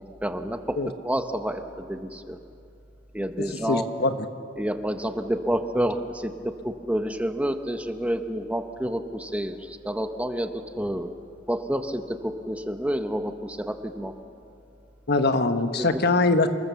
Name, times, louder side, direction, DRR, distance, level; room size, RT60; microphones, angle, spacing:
voice 1, 0.0-2.4 3.1-3.8 4.6-11.1 11.5-14.1 15.8-16.0, equal, 5° right, 7 dB, 0.8 m, -29 dB
voice 2, 3.7-4.1 15.1-16.5, left 3 dB, 55° left, 8 dB, 1.3 m, -22 dB
28.0 x 20.5 x 7.0 m, 2.6 s
head